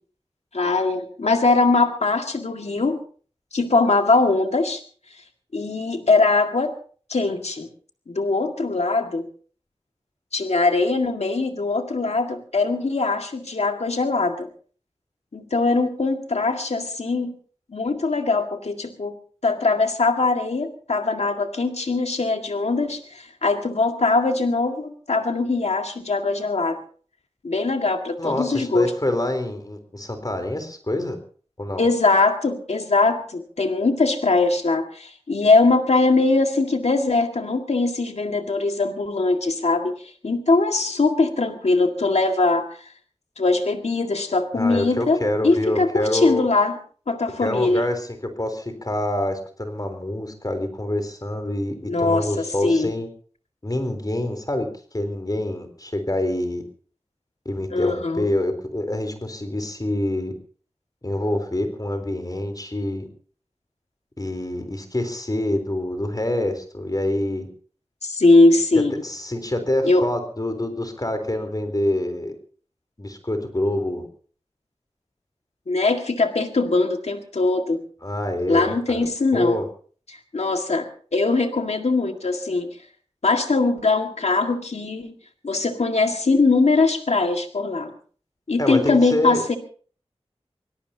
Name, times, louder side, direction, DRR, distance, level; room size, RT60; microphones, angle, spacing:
voice 1, 0.5-3.0 3.5-4.8 5.5-6.7 7.1-7.7 8.1-9.3 10.3-14.5 15.3-17.3 17.7-19.1 19.4-26.8 27.4-28.9 31.8-39.9 40.2-42.7 43.4-45.2 45.4-46.8 47.1-47.9 51.9-52.9 57.7-58.3 68.0-68.9 69.8-70.0 75.7-77.8 78.5-79.6 80.1-82.7 83.2-85.1 85.4-87.9 88.5-89.6, left 3 dB, 85° left, 5 dB, 2.0 m, -21 dB
voice 2, 28.2-31.2 31.6-31.9 44.5-46.5 47.4-53.1 53.6-54.7 54.9-56.6 57.5-60.3 61.0-63.0 64.2-67.5 69.0-72.4 73.0-74.1 78.0-79.1 79.3-79.7 88.6-89.4, left 1 dB, 35° left, 7 dB, 3.9 m, -26 dB
25.5 x 17.5 x 2.9 m, 0.43 s
wide cardioid pair, 40°, 11 cm